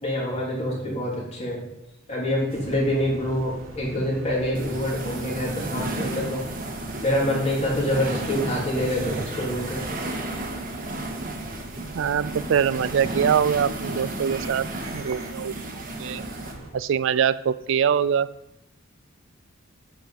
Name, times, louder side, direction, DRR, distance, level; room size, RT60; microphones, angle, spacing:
voice 1, 0.0-1.6 2.1-6.4 7.0-10.0, left 1 dB, 30° left, -4 dB, 3.5 m, -26 dB
sound 1, 2.5-16.7, right 1 dB, 85° right, 2.5 m, -42 dB
sound 2, 4.5-16.5, right 2 dB, 45° right, 1.7 m, -33 dB
voice 2, 11.9-14.6 14.9-16.2 16.7-18.3, right 8 dB, 65° right, 15 dB, 0.4 m, -23 dB
9.3 x 7.7 x 5.2 m, 0.87 s
head